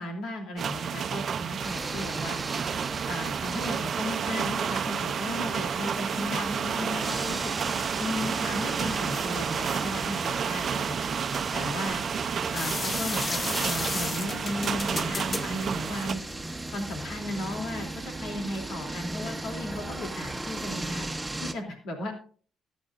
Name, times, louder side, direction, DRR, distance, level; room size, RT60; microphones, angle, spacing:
voice 1, 0.0-2.4 3.1-7.5 8.0-11.0 11.5-12.0 12.5-16.2 16.7-21.1 21.4-22.1, left 1 dB, 80° left, 3 dB, 3.1 m, -35 dB
sound 1, 0.6-16.1, right 7 dB, 55° right, 0.6 m, -31 dB
sound 2, 1.6-21.5, right 2 dB, 10° right, 1.1 m, -37 dB
sound 3, 5.2-16.5, left 3 dB, 30° left, 0.6 m, -37 dB
15.0 x 10.0 x 2.6 m, 0.42 s
cardioid pair, 90°, 0 cm